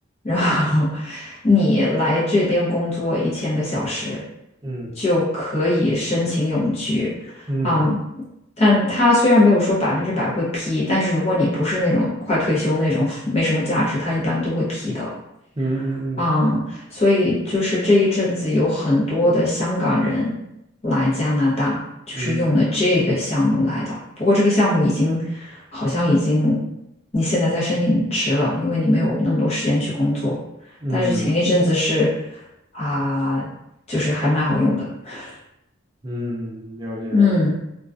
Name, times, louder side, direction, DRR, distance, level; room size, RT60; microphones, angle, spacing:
voice 1, 0.2-4.2 5.0-7.1 7.6-8.0 8.6-15.1 16.2-20.3 20.8-21.8 22.1-26.6 27.1-30.4 30.9-32.1 32.7-33.5 33.9-35.3 37.1-37.5, left 1 dB, 30° left, -7 dB, 0.7 m, -20 dB
voice 2, 15.6-16.3 22.1-22.5 30.8-31.4 36.0-37.5, right 1 dB, 20° right, -3 dB, 0.4 m, -27 dB
2.3 x 2.2 x 2.4 m, 0.84 s
head